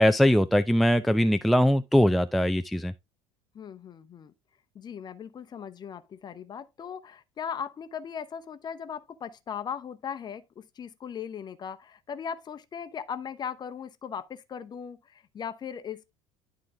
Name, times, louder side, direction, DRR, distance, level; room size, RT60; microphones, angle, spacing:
voice 1, 0.0-2.9, equal, ahead, 0.4 m, -21 dB
voice 2, 3.5-4.3 4.7-16.1, left 7 dB, 30° left, 0.8 m, -38 dB
11.0 x 3.8 x 3.5 m
figure-of-eight pair, 65°, 14 cm